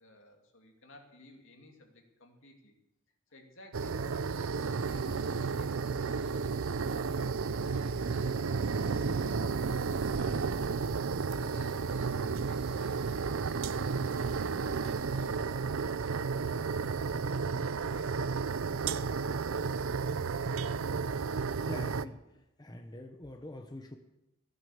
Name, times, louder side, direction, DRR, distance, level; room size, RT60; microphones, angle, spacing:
voice 1, 0.0-2.8 3.3-6.2 6.7-7.4 7.7-8.2 9.9-13.0 14.3-18.6, left 1 dB, 65° left, 3 dB, 2.5 m, -56 dB
sound 1, 3.7-22.1, right 5 dB, 75° right, 0.5 m, -32 dB
sound 2, 4.2-6.7 7.3-10.5 11.2-14.2, right 6 dB, 55° right, 2.3 m, -60 dB
sound 3, 9.6-20.7, equal, 25° right, 5.7 m, -57 dB
voice 2, 21.6-22.2 22.6-24.0, left 1 dB, 20° left, 5 dB, 0.8 m, -44 dB
16.0 x 9.5 x 7.1 m, 0.94 s
head